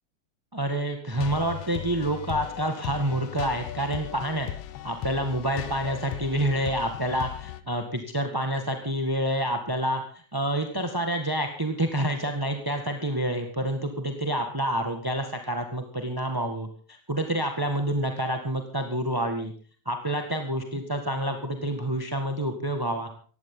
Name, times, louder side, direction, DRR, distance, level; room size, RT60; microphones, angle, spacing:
voice 1, 0.5-4.5 4.8-19.5 19.8-23.1, right 1 dB, 10° right, 5 dB, 1.1 m, -28 dB
sound 1, 1.1-7.6, left 12 dB, 65° left, 1.6 m, -37 dB
18.5 x 15.5 x 3.9 m, 0.42 s
omnidirectional pair, 3.3 m